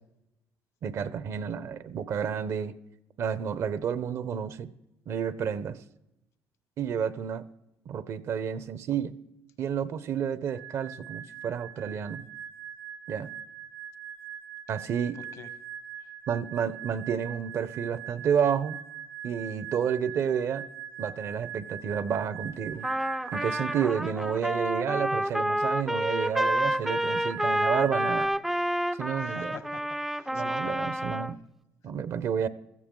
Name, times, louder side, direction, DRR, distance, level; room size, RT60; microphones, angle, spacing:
voice 1, 0.8-2.8 3.2-4.7 5.1-5.8 6.8-7.5 7.9-9.2 9.6-12.3 13.1-13.3 14.7-15.2 16.3-18.8 19.2-20.6 21.0-22.9 23.3-28.3 29.0-29.5 30.3-31.4 31.8-32.5, right 7 dB, 55° right, 16 dB, 0.8 m, -30 dB
sound 1, 10.5-24.2 26.1-28.3, right 9 dB, 80° right, 1.5 m, -42 dB
voice 2, 15.1-15.5 16.0-16.1 29.2-30.8, left 8 dB, 75° left, 11 dB, 1.4 m, -47 dB
Trumpet, 22.8-31.3, right 1 dB, 5° right, 0.4 m, -29 dB
16.0 x 14.5 x 3.8 m, 0.89 s
cardioid pair, 95°, 6 cm